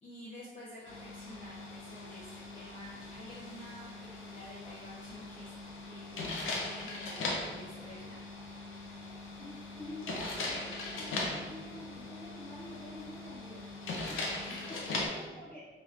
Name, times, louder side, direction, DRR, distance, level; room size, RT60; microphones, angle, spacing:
voice 1, 0.0-5.5 5.8-8.2 14.4-15.2, left 1 dB, 35° left, -8 dB, 0.6 m, -50 dB
sound 1, 0.9-15.1, left 2 dB, 85° left, 0.6 m, -40 dB
voice 2, 9.4-14.2 14.5-15.6, left 1 dB, 10° left, -10 dB, 1.5 m, -48 dB
3.3 x 3.0 x 2.4 m, 1.4 s
wide cardioid pair, 170°, 20 cm